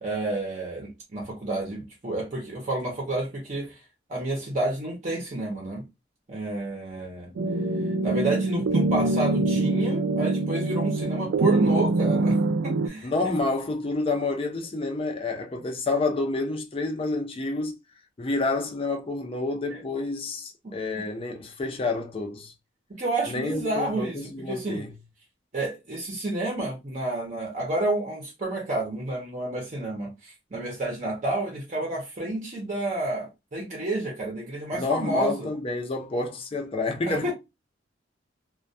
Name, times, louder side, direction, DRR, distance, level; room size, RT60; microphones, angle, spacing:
voice 1, 0.0-3.8 4.1-5.8 6.3-7.3 8.0-12.4 12.6-13.3 19.7-19.8 20.6-21.1 22.9-24.2 24.5-24.8 25.5-35.5 37.1-37.3, right 2 dB, 40° right, 0.6 m, -30 dB
sound 1, 7.4-12.9, right 2 dB, 85° right, 0.3 m, -24 dB
voice 2, 13.0-17.7 18.2-22.5 23.3-24.9 34.7-37.3, left 3 dB, 30° left, 0.5 m, -29 dB
2.2 x 2.2 x 2.6 m
head